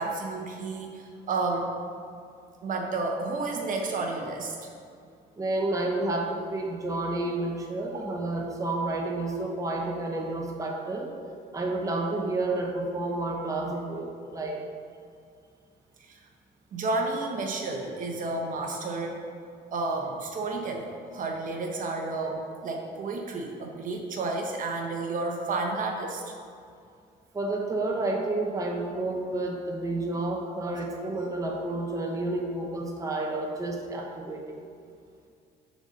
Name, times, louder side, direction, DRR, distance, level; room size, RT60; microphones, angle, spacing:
voice 1, 0.0-1.7 2.6-4.7 7.8-8.0 16.0-16.2 16.7-19.2 19.7-26.3, right 3 dB, 50° right, 2 dB, 0.9 m, -31 dB
voice 2, 5.4-11.2 11.5-14.6 27.3-34.6, right 2 dB, 20° right, 0 dB, 0.9 m, -30 dB
7.0 x 4.1 x 6.4 m, 2.3 s
cardioid pair, 110°, 17 cm